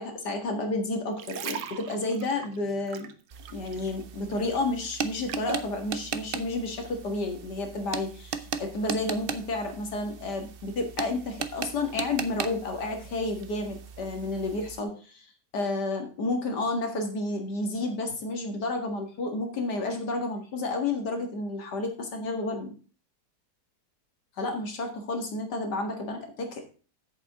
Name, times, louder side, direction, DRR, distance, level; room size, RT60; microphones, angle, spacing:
voice 1, 0.0-3.1 3.5-15.3 15.5-22.7 24.4-26.7, left 2 dB, 75° left, 4 dB, 2.4 m, -31 dB
sound 1, 1.0-4.0 4.3-5.7 6.3-6.5, right 8 dB, 70° right, 1.4 m, -40 dB
sound 2, 3.3-14.8, right 6 dB, 55° right, 0.6 m, -38 dB
8.1 x 7.2 x 4.9 m, 0.37 s
omnidirectional pair, 1.8 m